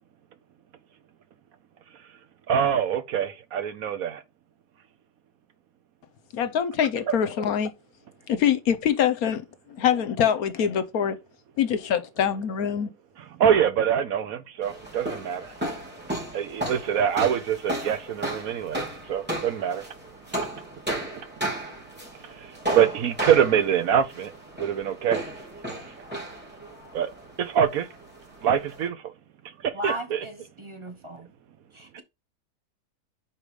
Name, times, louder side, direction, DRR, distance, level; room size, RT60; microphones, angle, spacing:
voice 1, 2.5-4.2 7.1-7.2 13.4-15.4 16.3-18.8 19.1-19.8 22.7-24.3 24.6-25.2 26.9-27.1 27.4-27.9 28.4-28.9 29.8-30.2, right 8 dB, 65° right, 1.1 m, -24 dB
voice 2, 6.3-7.7 8.3-9.4 9.8-11.2 11.6-12.9, left 8 dB, 70° left, 1.2 m, -24 dB
sound 1, 14.6-28.9, right 1 dB, 5° right, 2.8 m, -34 dB
voice 3, 29.7-31.3 31.7-32.0, right 1 dB, 20° right, 1.0 m, -36 dB
5.2 x 4.8 x 5.1 m
omnidirectional pair, 1.7 m